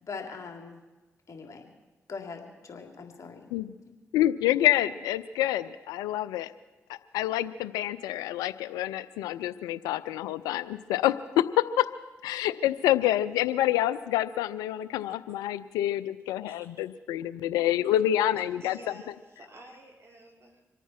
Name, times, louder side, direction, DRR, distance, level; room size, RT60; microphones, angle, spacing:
voice 1, 0.0-0.8 1.3-1.6 2.1-3.5 3.9-4.0, left 5 dB, 55° left, 3 dB, 3.1 m, -41 dB
voice 2, 4.1-6.5 6.9-11.9 12.2-18.8, left 13 dB, 90° left, 16 dB, 0.4 m, -27 dB
voice 3, 18.3-20.6, right 1 dB, 45° right, 0 dB, 4.8 m, -50 dB
26.0 x 9.2 x 5.8 m, 1.1 s
hypercardioid pair, 40°, 6 cm